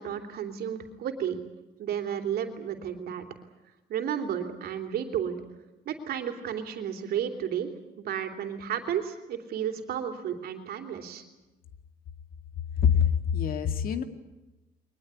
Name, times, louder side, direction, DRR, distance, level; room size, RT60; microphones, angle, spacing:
voice 1, 0.0-1.4 1.8-3.2 3.9-5.4 5.8-7.7 8.0-11.2, right 9 dB, 65° right, 6 dB, 3.1 m, -32 dB
voice 2, 12.8-14.0, left 8 dB, 60° left, 8 dB, 2.1 m, -24 dB
22.5 x 20.0 x 9.7 m, 1.0 s
cardioid pair, 110°, 17 cm